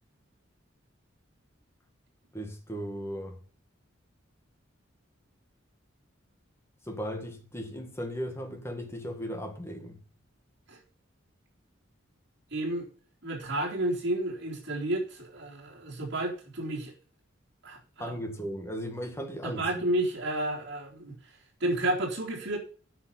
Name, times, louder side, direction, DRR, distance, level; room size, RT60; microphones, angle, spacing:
voice 1, 2.3-3.4 6.8-10.0 18.0-19.9, equal, 15° left, 1.9 m, -37 dB
voice 2, 12.5-12.9 13.2-16.9 17.6-18.2 19.4-21.1 21.6-22.6, right 1 dB, 60° right, 3.9 m, -31 dB
9.9 x 5.7 x 8.5 m
head